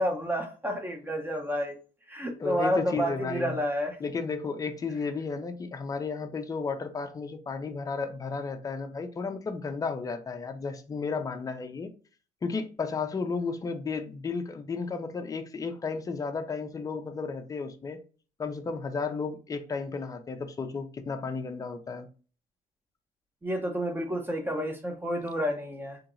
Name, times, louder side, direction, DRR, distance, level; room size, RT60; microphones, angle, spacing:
voice 1, 0.0-1.8 2.1-4.0 23.4-26.0, equal, 10° right, 0.7 m, -30 dB
voice 2, 2.4-3.6 4.0-11.9 12.4-18.0 18.4-22.1, left 4 dB, 20° left, 0.4 m, -33 dB
2.9 x 2.8 x 3.8 m
cardioid pair, 145°, 16 cm